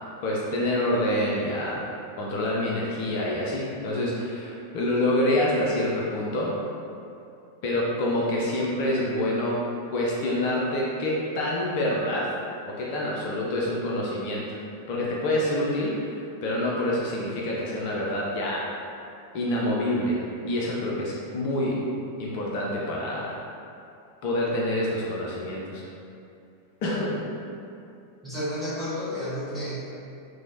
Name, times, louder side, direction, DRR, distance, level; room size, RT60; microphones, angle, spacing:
voice 1, 0.2-1.8 2.2-6.5 7.6-9.6 9.9-12.3 12.7-14.5 14.9-16.0 16.4-18.6 19.3-20.2 20.4-21.8 22.2-23.4 24.2-25.8 26.8-27.2, left 1 dB, 45° left, -4 dB, 0.4 m, -27 dB
voice 2, 28.2-29.7, equal, ahead, -12 dB, 0.9 m, -31 dB
3.0 x 2.1 x 2.6 m, 2.6 s
figure-of-eight pair, 90°, 0 cm